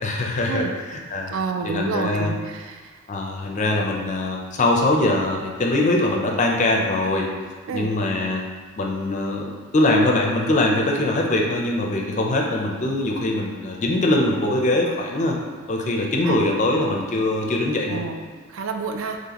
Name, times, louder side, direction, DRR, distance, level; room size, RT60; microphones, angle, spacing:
voice 1, 0.0-1.3 1.6-2.3 3.1-7.3 7.7-8.4 8.8-15.4 15.7-18.0, left 2 dB, 35° left, 0 dB, 0.4 m, -22 dB
voice 2, 1.3-2.9 6.7-6.9 7.7-7.9 16.2-16.4 17.9-19.2, right 4 dB, 65° right, 5 dB, 0.3 m, -29 dB
4.0 x 3.1 x 2.9 m, 1.5 s
head